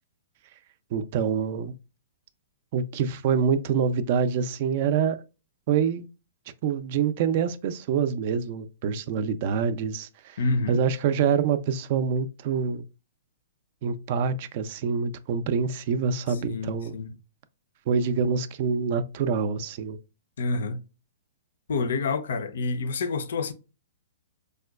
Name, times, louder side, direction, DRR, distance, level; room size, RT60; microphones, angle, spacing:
voice 1, 0.9-1.7 2.7-5.2 5.7-6.1 6.6-10.4 10.7-12.8 13.8-16.9 17.9-20.0, right 6 dB, 45° right, 0.3 m, -26 dB
voice 2, 10.4-10.8 16.4-17.1 20.4-20.8 21.7-23.5, left 3 dB, 70° left, 0.5 m, -28 dB
4.7 x 2.2 x 2.3 m
hypercardioid pair, 160°, 0 cm